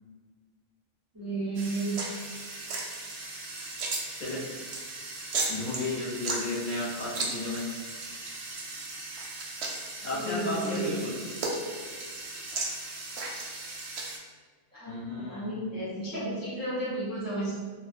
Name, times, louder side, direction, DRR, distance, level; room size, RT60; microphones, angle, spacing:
voice 1, 1.1-2.0 10.1-11.0 11.5-11.6 14.7-17.6, right 2 dB, 30° right, -10 dB, 0.4 m, -33 dB
sound 1, 1.6-14.2, right 3 dB, 65° right, 0.7 m, -36 dB
voice 2, 5.5-7.6 10.0-11.1 14.9-15.7, left 2 dB, 45° left, -9 dB, 0.7 m, -33 dB
2.3 x 2.0 x 3.4 m, 1.5 s
omnidirectional pair, 1.4 m